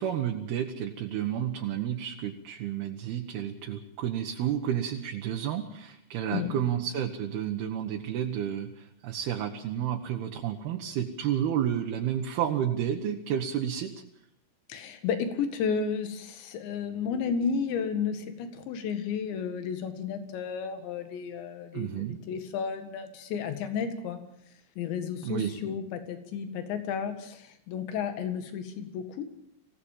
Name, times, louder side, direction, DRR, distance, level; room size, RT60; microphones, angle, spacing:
voice 1, 0.0-13.9 21.7-22.2 25.2-25.5, right 10 dB, 70° right, 2 dB, 3.1 m, -31 dB
voice 2, 6.3-6.6 14.7-24.2 24.8-29.3, left 6 dB, 85° left, 8 dB, 4.1 m, -32 dB
25.0 x 17.5 x 7.4 m, 0.74 s
omnidirectional pair, 5.0 m